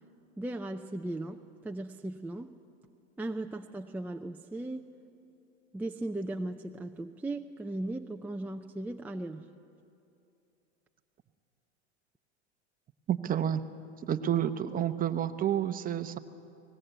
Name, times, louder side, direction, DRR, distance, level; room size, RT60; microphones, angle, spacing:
voice 1, 0.4-2.5 3.2-4.9 5.7-9.5, right 2 dB, 5° right, 3 dB, 0.5 m, -37 dB
voice 2, 13.1-13.6 14.1-16.2, right 10 dB, 25° right, 10 dB, 0.9 m, -29 dB
25.0 x 19.0 x 8.1 m, 2.6 s
supercardioid pair, 115°, 33 cm